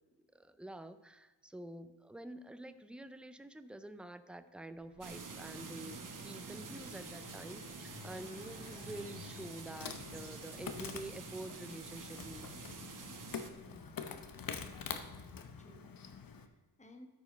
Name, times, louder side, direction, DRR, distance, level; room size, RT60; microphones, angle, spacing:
voice 1, 0.3-12.5, right 1 dB, 5° right, 11 dB, 0.4 m, -48 dB
Car passing by, 4.7-15.4, left 7 dB, 90° left, 0.9 m, -57 dB
sound 1, 5.0-13.5, right 5 dB, 50° right, 1.1 m, -48 dB
Insect, 9.7-16.5, left 6 dB, 60° left, 0.9 m, -46 dB
voice 2, 13.6-14.1 15.4-17.1, left 1 dB, 20° left, 3 dB, 1.2 m, -59 dB
13.0 x 5.1 x 5.1 m, 1.3 s
wide cardioid pair, 110°, 39 cm